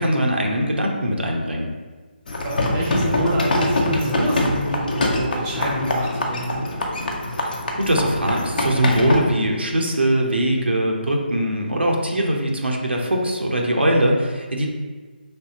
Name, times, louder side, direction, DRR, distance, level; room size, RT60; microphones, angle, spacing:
voice 1, 0.0-1.7 7.8-14.7, right 1 dB, 80° right, 0 dB, 0.8 m, -21 dB
sound 1, 2.3-9.2, left 1 dB, 55° left, 0.8 m, -24 dB
voice 2, 2.4-6.7, equal, 15° right, -3 dB, 0.7 m, -26 dB
5.2 x 3.4 x 2.9 m, 1.4 s
figure-of-eight pair, 150°, 6 cm